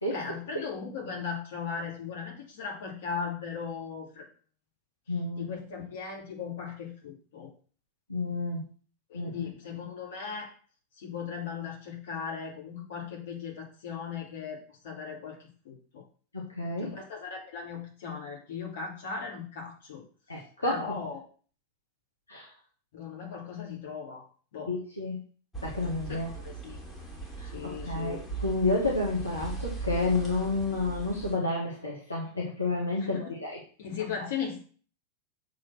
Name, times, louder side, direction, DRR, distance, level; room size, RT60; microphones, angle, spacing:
voice 1, 0.0-4.3 5.4-7.5 9.1-10.5 11.0-16.0 16.8-20.0 20.6-21.2 22.9-24.3 24.5-24.7 26.1-26.8 27.5-28.2 33.0-33.3 33.8-34.7, left 6 dB, 55° left, -1 dB, 3.2 m, -38 dB
voice 2, 5.1-5.5 8.1-8.6 9.1-9.3 16.3-17.0 20.3-20.9 22.3-22.4 24.7-25.2 25.6-26.3 27.4-33.6, left 2 dB, 80° left, -3 dB, 1.8 m, -30 dB
sound 1, 25.5-31.4, right 4 dB, 10° left, 2.5 m, -39 dB
7.2 x 4.6 x 6.2 m, 0.42 s
figure-of-eight pair, 90°, 0 cm